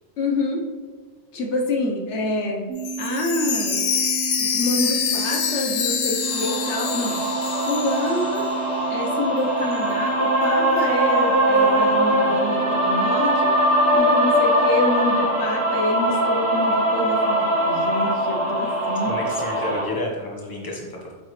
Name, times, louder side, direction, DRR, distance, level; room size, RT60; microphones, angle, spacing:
voice 1, 0.2-0.6 1.3-2.7 3.0-3.8 4.4-7.2 7.7-8.5 8.9-19.1, left 2 dB, 80° left, 1 dB, 1.2 m, -27 dB
sound 1, 2.7-14.0, right 7 dB, 90° right, 1.0 m, -33 dB
Chime, 2.8-8.7 9.0-9.1 9.7-9.8, left 7 dB, 60° left, 0.7 m, -26 dB
sound 2, 6.3-19.8, right 1 dB, 50° right, 2.1 m, -21 dB
voice 2, 19.0-21.1, left 1 dB, 20° left, -2 dB, 1.1 m, -30 dB
8.3 x 5.1 x 3.2 m, 1.4 s
omnidirectional pair, 1.2 m